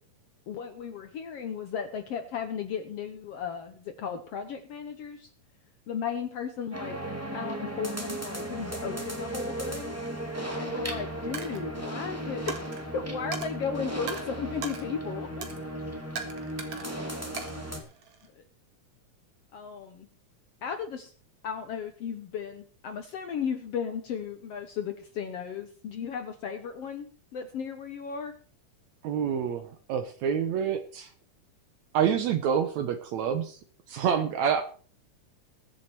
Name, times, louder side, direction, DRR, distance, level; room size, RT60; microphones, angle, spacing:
voice 1, 0.5-5.3 5.9-7.0 7.3-10.0 10.6-15.5 18.4-18.5 19.5-20.1 20.6-21.1 21.4-28.3, left 7 dB, 65° left, 7 dB, 1.8 m, -35 dB
sound 1, 6.7-17.8, right 1 dB, 5° right, 1.6 m, -36 dB
Coin (dropping), 11.3-11.6 12.5-12.8 13.3-13.5 14.1-14.2 14.6-14.8 15.4-15.6 16.2-16.9 17.4-18.3, right 6 dB, 55° right, 2.7 m, -38 dB
voice 2, 29.0-31.1 31.9-33.6 33.9-34.6, right 8 dB, 70° right, 9 dB, 2.0 m, -27 dB
21.5 x 7.6 x 4.5 m, 0.42 s
omnidirectional pair, 3.6 m